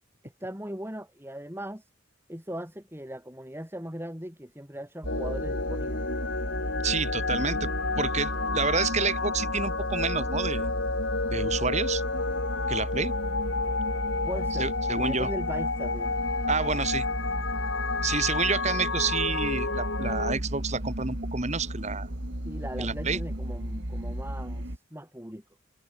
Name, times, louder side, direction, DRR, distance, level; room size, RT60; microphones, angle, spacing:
voice 1, 0.2-1.9 2.3-6.1 14.2-14.7 15.0-16.2 22.4-25.4, right 1 dB, 10° right, 5.7 m, -39 dB
sound 1, 5.0-24.8, right 1 dB, 60° right, 3.8 m, -34 dB
sound 2, 5.1-20.4, left 3 dB, 65° left, 2.2 m, -31 dB
voice 2, 6.8-7.7 8.0-10.7 11.2-12.0 12.7-13.1 14.6-15.3 16.5-17.1 18.0-22.1 22.8-23.2, right 4 dB, 35° right, 1.9 m, -29 dB
head